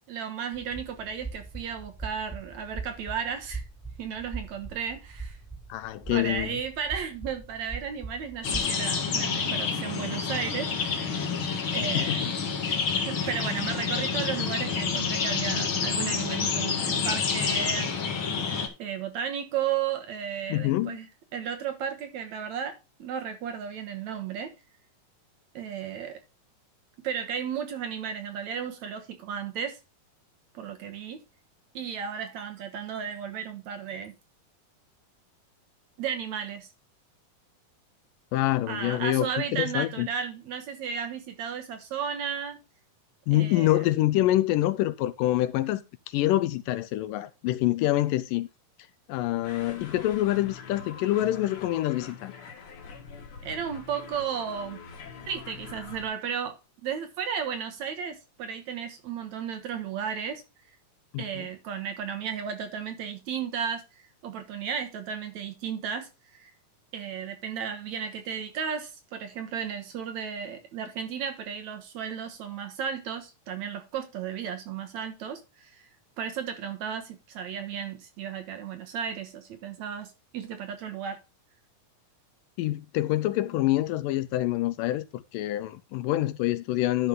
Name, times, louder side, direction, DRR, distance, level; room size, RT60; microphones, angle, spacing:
voice 1, 0.1-3.6 4.0-5.4 6.1-11.2 11.7-12.2 13.1-18.1 18.8-21.1 21.3-24.5 25.5-26.2 27.0-29.8 30.5-31.2 31.7-34.1 36.0-36.7 38.7-42.6 43.3-43.9 53.4-54.8 55.3-60.4 61.2-66.5 66.9-75.9 76.2-81.2, right 7 dB, 60° right, 2.2 m, -34 dB
sound 1, 0.5-8.7, right 4 dB, 5° left, 1.8 m, -41 dB
voice 2, 5.7-6.6 11.8-12.3 20.5-21.0 38.3-40.1 43.3-45.8 46.1-48.5 49.1-52.3 61.1-61.5 82.6-87.1, left 15 dB, 80° left, 2.2 m, -26 dB
sound 2, 8.4-18.7, left 5 dB, 45° left, 2.2 m, -28 dB
sound 3, 49.4-56.1, left 5 dB, 60° left, 3.3 m, -44 dB
11.5 x 5.5 x 3.7 m
omnidirectional pair, 4.1 m